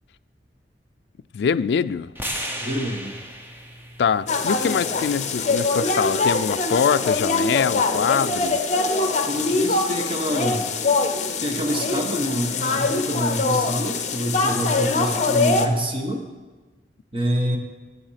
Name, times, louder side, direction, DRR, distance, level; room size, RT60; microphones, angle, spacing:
voice 1, 1.3-2.1 4.0-8.6, left 6 dB, 65° left, 14 dB, 0.3 m, -23 dB
sound 1, 2.1-6.3, equal, 15° right, 1.0 m, -36 dB
voice 2, 2.6-3.2 9.3-10.7 11.4-16.3 17.1-17.6, equal, 30° right, 2 dB, 1.4 m, -26 dB
sound 2, 4.3-15.7, left 3 dB, 40° left, 0.8 m, -23 dB
11.5 x 7.9 x 5.7 m, 1.3 s
head